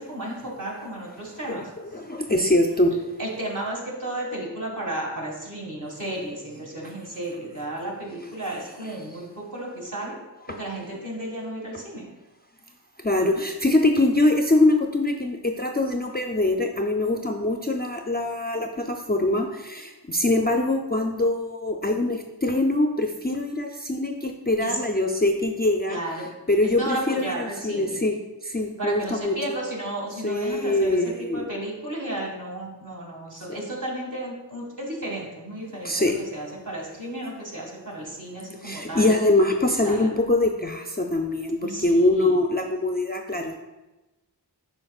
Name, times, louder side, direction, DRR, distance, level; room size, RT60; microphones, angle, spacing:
voice 1, 0.0-1.7 3.2-10.2 10.5-12.1 24.6-24.8 25.9-26.3 26.6-28.0 28.8-39.1 39.7-40.1 41.6-42.4, right 1 dB, 45° right, -3 dB, 1.9 m, -33 dB
voice 2, 1.5-2.9 8.5-8.9 10.5-10.6 13.0-28.1 28.5-29.6 30.2-31.5 35.8-36.2 38.6-43.6, left 2 dB, 25° left, 3 dB, 0.4 m, -23 dB
7.7 x 5.3 x 2.4 m, 1.1 s
wide cardioid pair, 45°, 42 cm